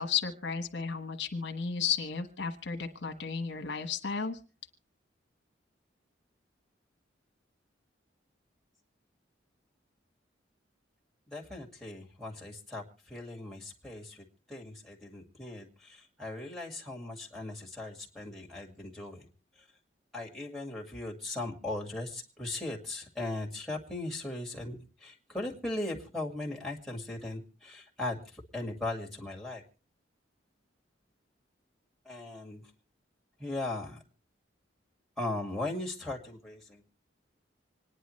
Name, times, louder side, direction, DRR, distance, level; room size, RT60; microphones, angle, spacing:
voice 1, 0.0-4.4, left 6 dB, 70° left, 5 dB, 1.3 m, -33 dB
voice 2, 11.3-19.3 19.6-19.7 20.1-29.6 32.1-32.7 33.4-34.0 35.2-36.8, left 2 dB, ahead, -1 dB, 2.2 m, -38 dB
26.0 x 10.0 x 3.2 m, 0.36 s
head